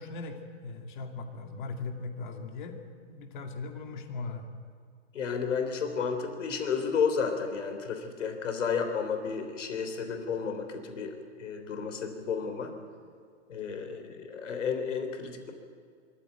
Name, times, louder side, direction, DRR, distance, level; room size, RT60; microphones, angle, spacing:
voice 1, 0.0-2.8 3.1-4.4, left 3 dB, 40° left, 4 dB, 2.5 m, -39 dB
voice 2, 5.1-12.7 13.5-15.5, left 6 dB, 75° left, 6 dB, 3.5 m, -32 dB
23.5 x 15.0 x 9.1 m, 2.3 s
hypercardioid pair, 165°, 37 cm